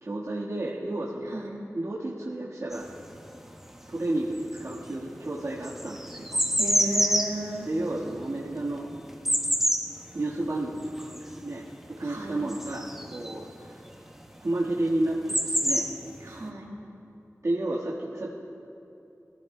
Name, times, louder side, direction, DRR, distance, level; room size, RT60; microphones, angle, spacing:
voice 1, 0.0-1.4 1.7-2.9 3.9-6.4 7.6-8.9 10.1-13.8 14.4-15.9 17.4-18.3, right 1 dB, 65° right, -7 dB, 1.5 m, -31 dB
sound 1, 2.7-3.9 4.2-13.5 14.5-14.6 14.8-16.4, equal, 5° right, 1.2 m, -28 dB
voice 2, 6.6-7.7 12.0-12.4 16.2-16.7, right 1 dB, 85° right, -2 dB, 2.3 m, -34 dB
21.5 x 15.0 x 2.2 m, 2.8 s
wide cardioid pair, 55°, 6 cm